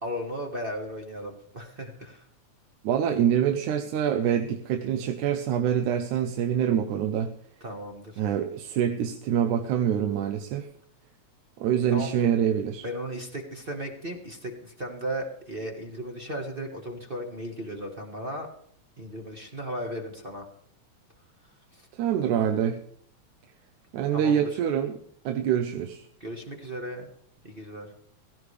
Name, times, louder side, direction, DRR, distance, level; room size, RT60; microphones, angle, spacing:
voice 1, 0.0-2.2 7.6-8.2 11.9-12.3 12.8-18.5 19.0-20.5 21.7-21.9 24.1-24.5 26.2-27.1 27.4-27.9, equal, 40° right, 3 dB, 0.8 m, -36 dB
voice 2, 2.8-7.3 8.2-10.7 11.6-12.8 21.9-22.8 23.9-25.0 25.3-26.0, right 9 dB, 90° right, 7 dB, 2.3 m, -25 dB
17.0 x 16.5 x 3.3 m, 0.65 s
omnidirectional pair, 3.4 m